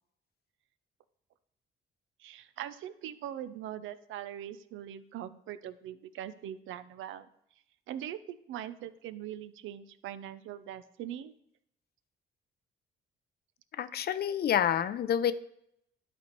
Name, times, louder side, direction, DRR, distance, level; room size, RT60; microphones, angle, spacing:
voice 1, 2.2-7.3 7.9-11.4, right 11 dB, 80° right, 13 dB, 0.6 m, -41 dB
voice 2, 13.8-15.3, left 9 dB, 55° left, 14 dB, 0.5 m, -28 dB
11.5 x 4.3 x 4.5 m, 0.76 s
cardioid pair, 90°, 20 cm